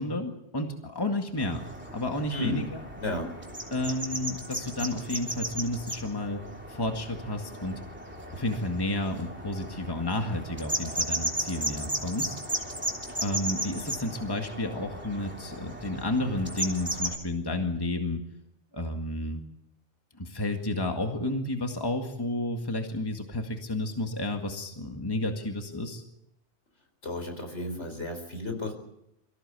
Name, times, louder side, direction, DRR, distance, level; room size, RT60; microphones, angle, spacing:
voice 1, 0.0-1.7 1.9-2.6 3.7-6.4 6.7-7.8 8.3-12.4 13.2-18.2 18.7-19.4 20.2-26.0, left 1 dB, 20° left, 4 dB, 2.0 m, -31 dB
sound 1, 1.4-17.2, right 1 dB, 10° right, 3.1 m, -36 dB
voice 2, 2.3-2.7 3.0-3.3 27.0-28.7, left 1 dB, 75° left, 4 dB, 4.8 m, -33 dB
24.0 x 15.5 x 8.3 m, 0.83 s
omnidirectional pair, 1.2 m